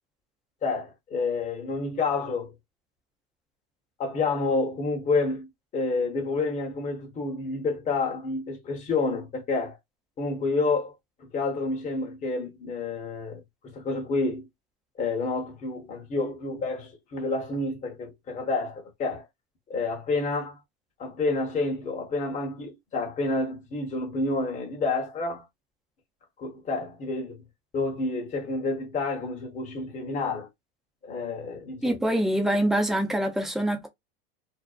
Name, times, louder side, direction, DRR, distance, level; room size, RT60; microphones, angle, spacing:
voice 1, 0.6-2.5 4.0-5.5 5.7-9.8 10.2-10.9 11.2-14.5 15.0-19.3 19.7-20.6 21.0-25.5 26.4-27.4 27.7-30.5 31.0-32.0, left 3 dB, 25° left, 0.9 m, -29 dB
voice 2, 31.8-33.9, right 1 dB, ahead, 0.5 m, -25 dB
2.6 x 2.0 x 2.3 m
hypercardioid pair, 115°, 30 cm